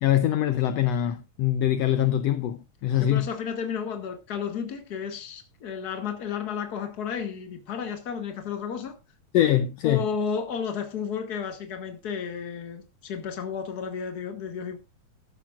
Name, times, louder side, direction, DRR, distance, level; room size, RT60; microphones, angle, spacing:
voice 1, 0.0-3.3 9.3-10.1, left 11 dB, 70° left, 1.7 m, -23 dB
voice 2, 3.0-9.0 9.8-14.8, left 7 dB, 40° left, 1.8 m, -32 dB
13.0 x 12.0 x 2.4 m
omnidirectional pair, 3.4 m